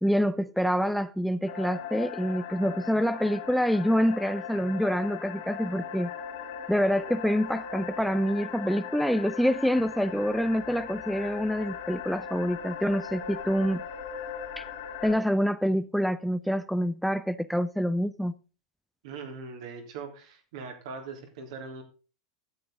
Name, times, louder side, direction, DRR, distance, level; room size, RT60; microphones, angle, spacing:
voice 1, 0.0-6.1 6.7-13.8 14.6-14.7 15.0-18.3, equal, ahead, 0.5 m, -26 dB
sound 1, 1.5-15.1, left 7 dB, 70° left, 3.5 m, -39 dB
voice 2, 19.0-21.8, right 4 dB, 70° right, 3.5 m, -41 dB
12.0 x 7.9 x 3.7 m
hypercardioid pair, 105°, 3 cm